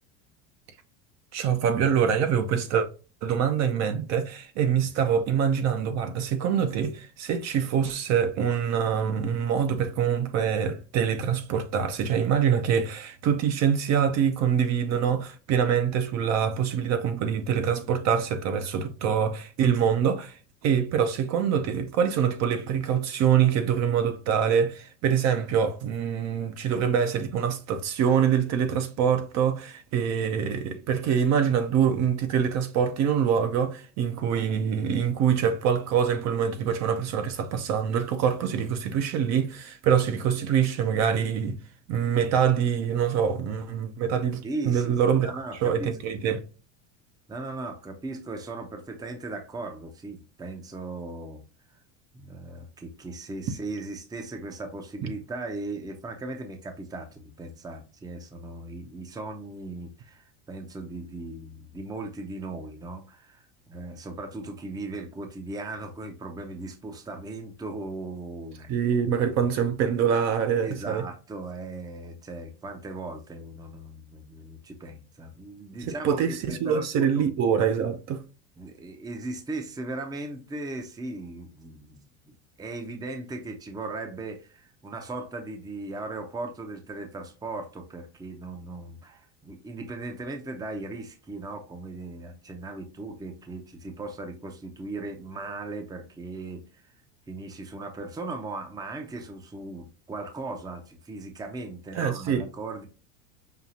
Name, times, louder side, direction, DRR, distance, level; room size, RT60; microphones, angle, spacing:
voice 1, 1.3-2.9 3.2-20.4 20.6-41.6 41.9-45.3 45.6-46.4 55.0-55.1 68.7-71.0 76.0-78.2 101.9-102.4, right 8 dB, 45° right, 0.7 m, -25 dB
voice 2, 44.4-45.9 47.3-51.4 52.1-68.7 70.6-77.3 78.6-96.9 97.3-102.9, right 2 dB, 10° right, 0.6 m, -38 dB
5.6 x 2.4 x 2.7 m
supercardioid pair, 120°, 38 cm